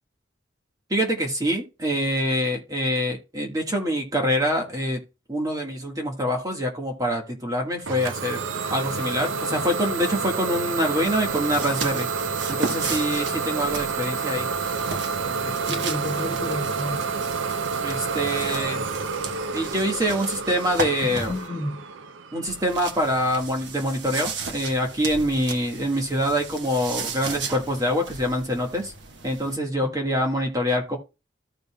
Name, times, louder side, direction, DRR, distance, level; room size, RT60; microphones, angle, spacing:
voice 1, 0.9-5.0 5.3-8.4 8.7-12.1 12.5-14.5 15.2-15.5 17.8-18.8 19.5-21.3 22.3-28.9 29.2-31.0, equal, 20° right, 1.5 m, -25 dB
Idling / Domestic sounds home sounds, 7.9-23.4, right 5 dB, 85° right, 0.6 m, -29 dB
sound 1, 11.0-21.5 22.5-29.6, right 4 dB, 70° right, 1.2 m, -36 dB
voice 2, 15.6-17.1 21.0-21.9 29.7-29.9, left 1 dB, 65° left, 1.3 m, -32 dB
14.0 x 5.3 x 2.2 m
head